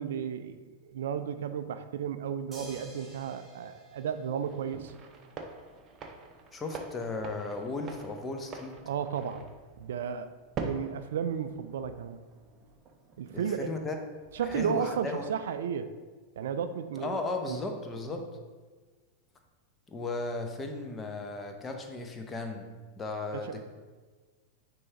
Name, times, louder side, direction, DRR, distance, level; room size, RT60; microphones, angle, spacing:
voice 1, 0.0-4.9 8.8-9.5 9.8-12.2 13.2-13.7 14.3-15.9 16.4-17.2 17.5-17.6 18.1-18.2 23.3-23.5, right 7 dB, 60° right, 10 dB, 0.3 m, -33 dB
sound 1, 2.5-5.0 6.7-6.8, right 1 dB, 10° right, 1.6 m, -50 dB
sound 2, 4.4-15.0, right 4 dB, 30° right, 0.6 m, -45 dB
voice 2, 6.5-8.8 13.3-14.0 14.4-15.3 17.0-18.2 19.9-22.7 23.0-23.6, left 3 dB, 20° left, 4 dB, 0.7 m, -35 dB
9.5 x 3.4 x 2.9 m, 1.4 s
figure-of-eight pair, 90°, 0 cm